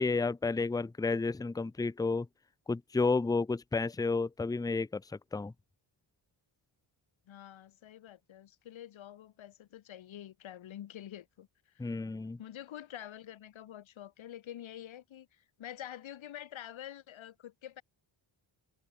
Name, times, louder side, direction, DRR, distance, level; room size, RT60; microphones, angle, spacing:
voice 1, 0.0-2.3 2.7-5.0 5.3-5.5 11.8-12.4, left 3 dB, 10° left, 0.6 m, -31 dB
voice 2, 7.3-11.5 11.7-11.9 12.4-17.8, left 11 dB, 80° left, 5.0 m, -47 dB
wide cardioid pair, 165°, 46 cm